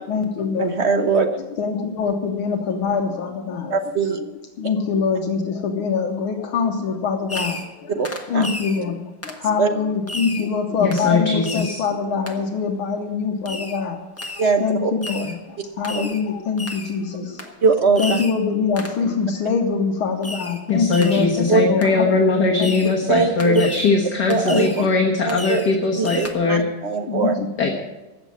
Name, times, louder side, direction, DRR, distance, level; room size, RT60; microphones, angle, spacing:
voice 1, 0.1-0.7 1.6-3.8 4.2-4.3 4.6-7.9 8.3-14.0 14.3-15.4 15.8-17.5 18.0-22.7 23.0-23.1 24.5-25.0 27.1-27.7, left 5 dB, 70° left, 4 dB, 1.9 m, -24 dB
voice 2, 0.6-1.3 3.7-4.2 7.9-8.1 8.3-8.5 9.6-9.7 14.4-14.9 15.9-16.1 17.6-18.2 21.5-21.6 23.1-23.6 24.3-24.9 25.2-27.3, right 4 dB, 50° right, 6 dB, 0.8 m, -21 dB
Fireworks, 7.3-7.8 8.0-8.8 9.2-9.4 10.1-10.5 10.9-11.1 11.4-11.8 12.3-12.4 13.5-13.8 14.2-14.5 15.0-15.4 15.8-16.2 16.6-17.0 17.4-17.5 18.0-18.4 18.8-19.0 20.2-20.6 20.9-21.3 21.8-21.9 22.6-23.0 23.4-23.9 24.3-24.9 25.3-25.7 26.0-26.3, left 2 dB, 10° left, 0.9 m, -33 dB
voice 3, 10.8-11.8 20.7-26.7 27.6-27.7, left 4 dB, 50° left, 1 dB, 1.8 m, -20 dB
15.5 x 6.6 x 9.4 m, 1.1 s
omnidirectional pair, 2.4 m